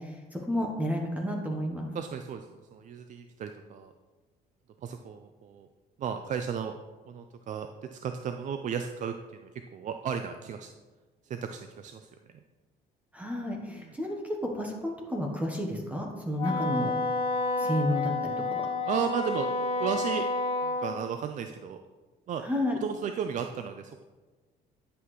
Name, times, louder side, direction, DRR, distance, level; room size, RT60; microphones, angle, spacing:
voice 1, 0.0-1.9 13.1-16.9 17.6-18.6 22.4-22.8, left 1 dB, 10° right, 0 dB, 1.1 m, -31 dB
voice 2, 1.9-3.9 4.8-5.7 6.0-6.8 7.1-10.7 11.2-12.1 13.7-13.9 18.8-19.5 19.8-20.3 20.6-21.8 22.3-22.4 22.8-24.0, right 7 dB, 45° right, 7 dB, 0.4 m, -34 dB
Wind instrument woodwind instrument, 16.4-20.9, left 3 dB, 30° left, 1.5 m, -30 dB
10.0 x 5.8 x 3.1 m, 1.3 s
cardioid pair, 110°, 17 cm